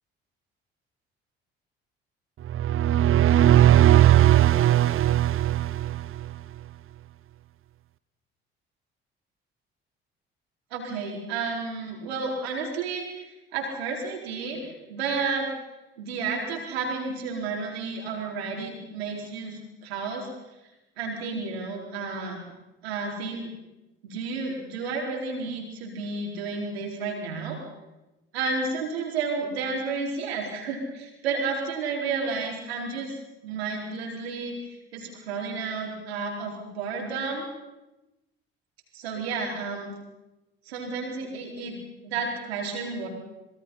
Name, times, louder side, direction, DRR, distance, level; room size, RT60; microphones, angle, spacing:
sound 1, 2.5-6.3, right 12 dB, 45° right, 0.8 m, -18 dB
voice 1, 10.7-15.5 16.0-20.3 21.0-22.4 22.8-23.5 24.0-27.6 28.3-33.2 33.4-37.4 38.9-39.9 40.7-41.7 42.0-43.1, right 4 dB, 80° right, 0 dB, 4.6 m, -31 dB
26.0 x 22.0 x 5.8 m, 1.0 s
figure-of-eight pair, 50°, 31 cm